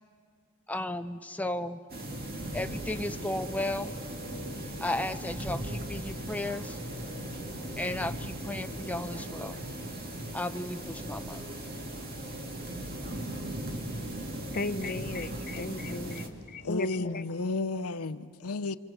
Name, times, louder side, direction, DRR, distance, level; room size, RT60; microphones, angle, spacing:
voice 1, 0.7-1.8 2.5-3.9 4.8-6.8 7.8-9.6 10.3-11.4, left 1 dB, 5° left, 0.6 m, -34 dB
sound 1, 1.9-16.3, right 1 dB, 45° right, 2.3 m, -38 dB
voice 2, 14.5-17.2, left 2 dB, 40° left, 0.8 m, -35 dB
voice 3, 16.6-18.8, left 3 dB, 90° left, 0.8 m, -32 dB
28.5 x 26.0 x 7.3 m
head